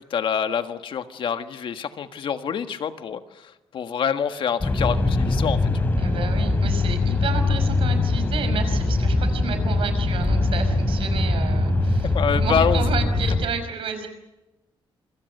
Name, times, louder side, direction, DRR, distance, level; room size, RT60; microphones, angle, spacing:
voice 1, 0.0-5.9 12.1-12.8, left 7 dB, 60° left, 8 dB, 1.6 m, -26 dB
sound 1, 4.6-13.5, left 2 dB, 20° left, 3.3 m, -22 dB
voice 2, 6.0-14.1, right 6 dB, 70° right, 9 dB, 5.5 m, -31 dB
27.0 x 25.0 x 6.7 m, 1.0 s
cardioid pair, 140°, 10 cm